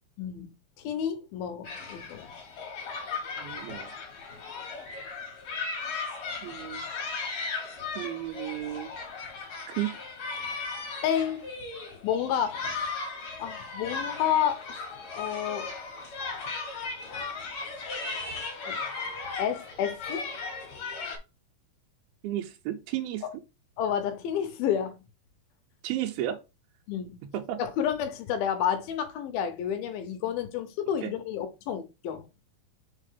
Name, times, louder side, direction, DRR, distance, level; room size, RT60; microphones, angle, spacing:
voice 1, 0.2-0.5 0.8-2.3 11.0-11.4 12.0-12.6 13.4-14.6 15.1-15.7 18.6-18.8 19.4-20.2 23.8-25.0 26.9-27.2 27.6-32.3, left 9 dB, 80° left, 2.7 m, -30 dB
sound 1, 1.6-21.2, left 4 dB, 55° left, 2.6 m, -37 dB
voice 2, 3.4-3.9 6.4-6.8 8.0-8.9 9.7-10.0 22.2-23.3 25.8-26.4 27.2-27.6 31.0-31.1, right 13 dB, 85° right, 2.5 m, -33 dB
6.5 x 4.1 x 3.6 m
omnidirectional pair, 4.2 m